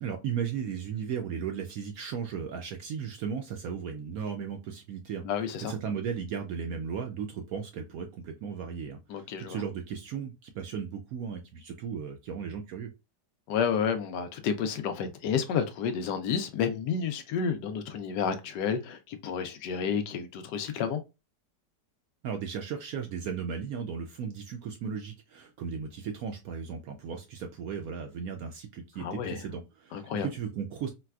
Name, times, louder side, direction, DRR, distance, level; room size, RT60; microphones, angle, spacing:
voice 1, 0.0-5.2 5.6-12.9 22.2-30.9, right 7 dB, 70° right, 0.8 m, -36 dB
voice 2, 5.2-5.7 9.1-9.6 13.5-21.0 29.0-29.4 29.9-30.3, left 7 dB, 75° left, 1.2 m, -30 dB
4.0 x 2.2 x 2.3 m
omnidirectional pair, 1.9 m